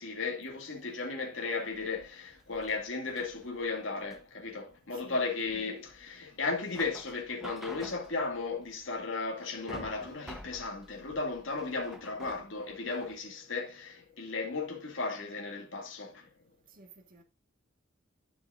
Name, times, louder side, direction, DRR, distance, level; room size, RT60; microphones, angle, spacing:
voice 1, 0.0-16.3, left 3 dB, 65° left, 2.2 m, -35 dB
sound 1, 1.7-13.2, equal, ahead, 1.0 m, -50 dB
voice 2, 16.7-17.2, right 3 dB, 45° right, 1.7 m, -54 dB
12.0 x 6.7 x 2.6 m
head